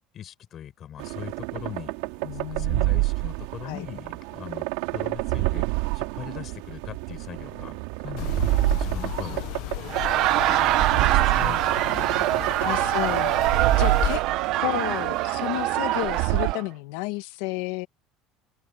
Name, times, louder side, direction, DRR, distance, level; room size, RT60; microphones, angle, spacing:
voice 1, 0.1-1.9 2.5-4.7 4.9-5.7 5.9-8.4 8.7-9.5 10.4-11.6 11.8-12.4 13.9-14.0, left 10 dB, 30° left, 7.2 m, -40 dB
sound 1, 1.0-16.5, right 25 dB, 90° right, 2.9 m, -28 dB
voice 2, 2.2-3.0 3.6-3.8 5.4-5.5 10.5-10.9 11.1-11.6 12.6-14.2 14.6-17.9, left 21 dB, 85° left, 2.1 m, -32 dB
sound 2, 8.2-14.2, left 19 dB, 60° left, 1.0 m, -34 dB
Laughter, 9.8-16.6, right 15 dB, 50° right, 1.5 m, -24 dB
open air
cardioid pair, 175°, 0 cm